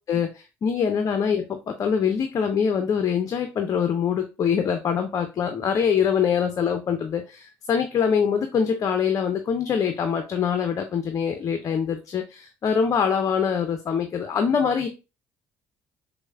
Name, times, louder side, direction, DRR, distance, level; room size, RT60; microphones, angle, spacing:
voice 1, 0.1-14.9, left 7 dB, 45° left, 7 dB, 0.5 m, -24 dB
6.1 x 2.0 x 2.3 m, 0.29 s
hypercardioid pair, 50°, 8 cm